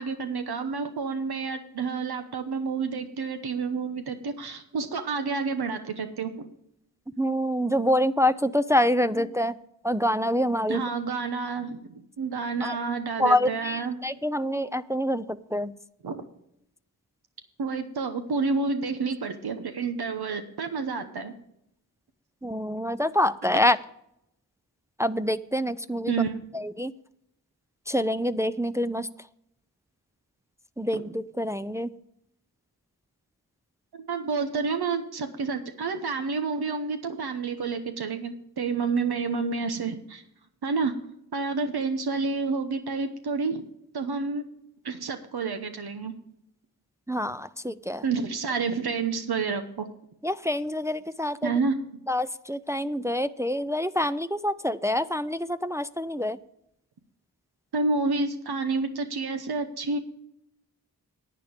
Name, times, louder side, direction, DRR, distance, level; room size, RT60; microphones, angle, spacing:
voice 1, 0.0-6.5 9.1-9.3 10.7-14.0 16.0-16.2 17.6-21.3 26.1-26.4 30.9-31.0 33.9-40.2 40.6-40.9 41.3-43.6 43.9-44.5 44.8-46.1 48.0-49.9 51.4-51.8 57.7-60.0, right 4 dB, 90° right, 7 dB, 1.0 m, -29 dB
voice 2, 7.2-9.5 9.8-10.8 12.6-12.7 13.2-15.7 22.4-23.8 25.0-26.1 26.5-26.9 27.9-29.1 30.8-31.9 47.1-48.0 50.2-51.5 52.1-56.4, left 1 dB, 10° right, 12 dB, 0.4 m, -26 dB
10.5 x 9.0 x 5.1 m, 0.77 s
wide cardioid pair, 65°, 37 cm